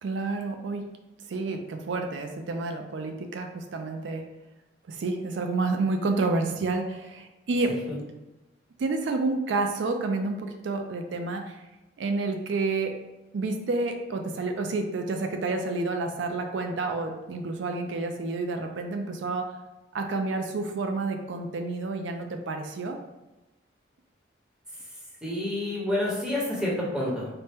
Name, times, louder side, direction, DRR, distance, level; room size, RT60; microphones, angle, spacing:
voice 1, 0.0-0.8 1.3-4.2 4.9-7.8 8.8-11.6 12.0-12.9 13.3-19.5 19.9-23.0, right 3 dB, 75° right, 5 dB, 0.4 m, -29 dB
voice 2, 25.2-27.3, left 1 dB, 5° right, -6 dB, 0.9 m, -28 dB
4.2 x 2.1 x 3.4 m, 1.0 s
head